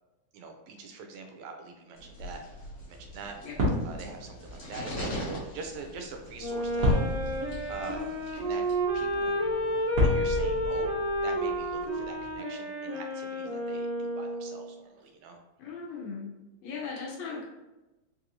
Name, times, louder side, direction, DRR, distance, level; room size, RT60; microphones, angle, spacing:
voice 1, 0.3-3.4 3.9-7.0 7.7-8.6 8.9-9.4 10.0-10.9 11.2-15.4, right 4 dB, 80° right, 4 dB, 1.7 m, -43 dB
sound 1, 1.9-8.8, equal, 55° left, 2.0 m, -42 dB
sound 2, 2.5-12.4, left 1 dB, 60° right, 1.0 m, -33 dB
Wind instrument woodwind instrument, 6.3-14.7, equal, 35° right, 1.3 m, -31 dB
voice 2, 15.6-16.3 16.6-17.4, left 5 dB, 75° left, -2 dB, 1.8 m, -38 dB
4.6 x 2.5 x 2.9 m, 1.1 s
omnidirectional pair, 3.4 m